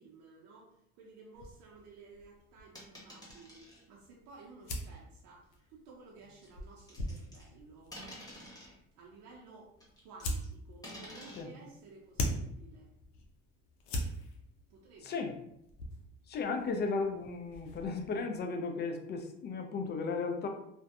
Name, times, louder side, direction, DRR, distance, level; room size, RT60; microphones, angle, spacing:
voice 1, 0.0-8.0 9.0-9.7 10.0-12.9 14.7-15.2, right 3 dB, 65° right, -2 dB, 0.6 m, -55 dB
sound 1, 1.3-18.2, left 1 dB, 85° left, 0.6 m, -43 dB
sound 2, 2.7-3.8 4.8-5.0 6.4-7.5 7.9-8.8 9.8-10.5 10.8-11.4, left 1 dB, 10° left, 1.0 m, -49 dB
voice 2, 15.0-15.3 16.3-20.5, left 4 dB, 35° left, 5 dB, 0.4 m, -35 dB
2.5 x 2.2 x 2.3 m, 0.78 s
supercardioid pair, 95°, 31 cm